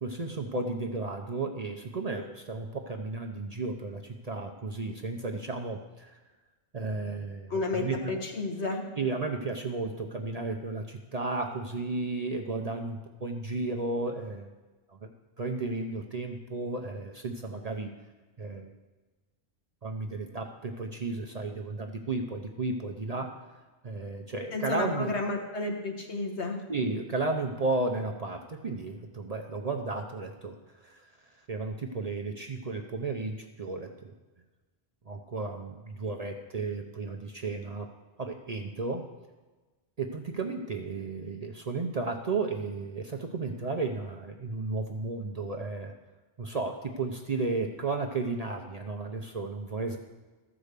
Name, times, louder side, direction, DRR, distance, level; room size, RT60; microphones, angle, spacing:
voice 1, 0.0-6.2 6.7-8.2 9.0-14.5 14.9-15.1 15.4-17.9 18.4-18.7 19.8-25.1 26.7-30.6 30.8-31.1 31.5-34.1 35.1-37.9 38.2-39.1 40.0-45.9 46.4-50.0, right 3 dB, 40° right, 2 dB, 0.6 m, -33 dB
voice 2, 7.5-8.8 24.5-26.6, left 2 dB, 70° left, 2 dB, 1.6 m, -31 dB
13.5 x 4.9 x 6.6 m, 1.3 s
omnidirectional pair, 1.2 m